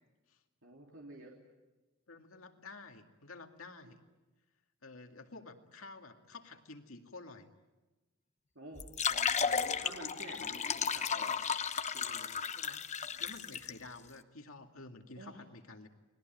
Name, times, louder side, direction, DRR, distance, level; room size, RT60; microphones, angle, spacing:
voice 1, 0.6-1.3 8.5-11.5 11.9-12.3 15.1-15.4, right 2 dB, 65° right, -1 dB, 3.3 m, -50 dB
voice 2, 2.1-4.0 4.8-7.5 12.6-12.8 13.2-15.9, left 3 dB, 85° left, 5 dB, 2.3 m, -51 dB
sound 1, 8.8-13.7, left 6 dB, 35° left, 1.0 m, -34 dB
30.0 x 20.5 x 9.2 m, 1.1 s
head